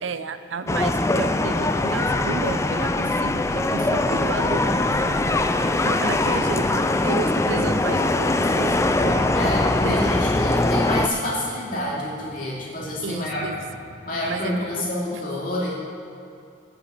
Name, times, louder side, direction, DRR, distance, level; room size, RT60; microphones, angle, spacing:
voice 1, 0.0-5.2 5.4-9.3 9.8-10.1 13.0-13.6 14.3-15.2, right 4 dB, 75° right, 11 dB, 0.6 m, -32 dB
sound 1, 0.7-11.1, left 2 dB, 15° left, 0.3 m, -22 dB
sound 2, 5.7-14.9, left 1 dB, 75° left, 1.5 m, -42 dB
voice 2, 9.3-13.5 14.1-15.8, left 1 dB, 45° left, -5 dB, 2.6 m, -28 dB
9.2 x 6.9 x 7.9 m, 2.6 s
head